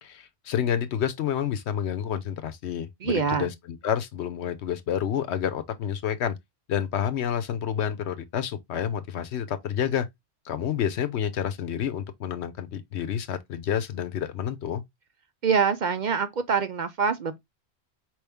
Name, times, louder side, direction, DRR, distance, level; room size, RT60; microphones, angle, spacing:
voice 1, 0.0-6.4 6.7-10.1 10.4-14.8, left 9 dB, 85° left, 1.0 m, -29 dB
voice 2, 3.0-3.5 15.4-17.4, right 6 dB, 50° right, 0.6 m, -25 dB
4.6 x 3.1 x 3.4 m
omnidirectional pair, 1.1 m